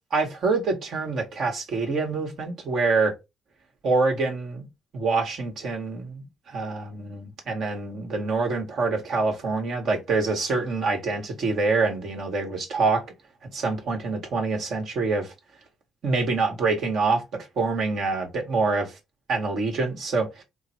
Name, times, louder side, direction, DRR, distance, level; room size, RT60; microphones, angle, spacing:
voice 1, 0.1-3.1 3.8-4.7 4.9-13.0 13.5-15.3 16.0-18.9 19.3-20.4, right 3 dB, 70° right, 1.6 m, -26 dB
3.8 x 2.3 x 4.4 m
cardioid pair, 90°, 0 cm